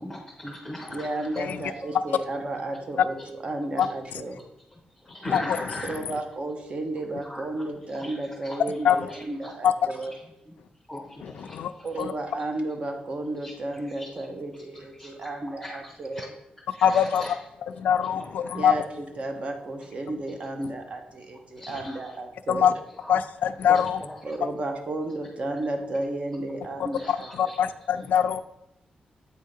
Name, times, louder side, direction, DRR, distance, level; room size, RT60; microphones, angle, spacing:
voice 1, 0.0-1.5 3.8-3.9 4.7-5.9 7.2-8.8 9.1-9.5 10.1-10.6 10.9-12.0 13.4-14.3 14.5-16.3 16.7-17.5 18.0-18.3 19.8-19.9 20.3-20.6 21.5-22.2 23.0-23.2 23.7-24.4 25.4-25.6 25.9-26.1 26.9-27.7 27.9-28.1, left 1 dB, 10° left, -1 dB, 0.8 m, -41 dB
voice 2, 0.9-4.4 5.9-10.1 11.8-16.3 18.5-22.7 24.2-27.3, right 2 dB, 40° right, 4 dB, 0.9 m, -33 dB
voice 3, 16.8-17.2 17.8-18.8 22.5-22.7 23.1-24.0 26.8-28.4, left 8 dB, 90° left, 11 dB, 0.3 m, -23 dB
8.0 x 2.7 x 5.0 m, 0.85 s
wide cardioid pair, 115°, 3 cm